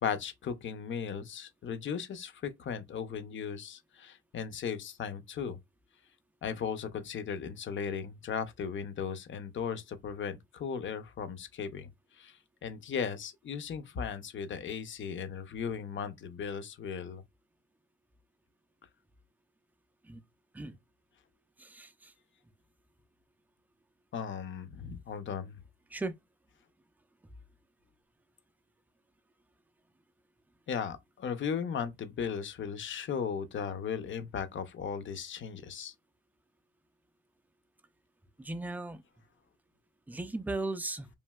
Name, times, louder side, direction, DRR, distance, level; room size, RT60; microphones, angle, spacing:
voice 1, 0.0-5.6 6.4-17.2 24.1-25.6 30.7-35.9, left 7 dB, 40° left, 0.6 m, -37 dB
voice 2, 21.6-22.1 25.9-26.1 38.4-39.0 40.1-41.1, right 2 dB, 5° right, 0.3 m, -37 dB
3.1 x 2.6 x 2.2 m
cardioid pair, 90°, 30 cm